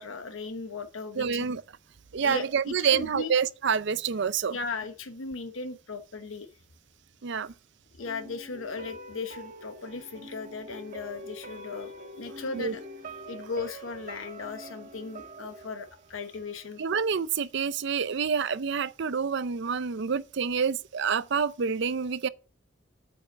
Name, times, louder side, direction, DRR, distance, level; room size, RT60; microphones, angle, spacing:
voice 1, 0.0-1.5 2.2-3.3 4.5-6.5 8.0-12.8 13.3-16.8, left 4 dB, 85° left, 1.0 m, -37 dB
voice 2, 1.2-1.6 2.1-4.6 7.2-7.5 12.5-12.7 16.8-22.3, right 6 dB, 60° right, 0.5 m, -27 dB
sound 1, 8.0-17.0 17.3-17.4, right 1 dB, 45° right, 1.6 m, -45 dB
8.5 x 5.5 x 7.8 m
head